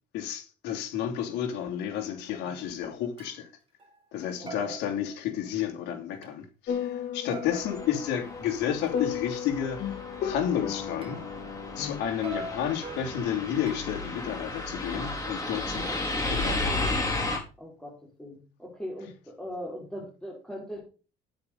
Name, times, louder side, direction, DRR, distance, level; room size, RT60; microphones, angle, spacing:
voice 1, 0.1-3.5 4.1-9.8 10.2-11.2 11.7-16.9, left 9 dB, 90° left, 3.0 m, -31 dB
sound 1, 2.6-2.7 3.2-3.4 3.8-4.2 4.5-5.7 6.2-6.3 7.3-9.4 11.0-11.9 12.2-14.1 14.9-16.1, right 3 dB, 35° right, 4.3 m, -44 dB
voice 2, 4.4-4.7 7.7-7.9 15.6-16.0 17.6-20.8, equal, 5° left, 5.4 m, -40 dB
sound 2, 6.7-12.0, left 8 dB, 70° left, 2.9 m, -35 dB
sound 3, 7.4-17.4, left 2 dB, 20° left, 5.4 m, -34 dB
12.5 x 10.0 x 4.1 m
cardioid pair, 110°, 17 cm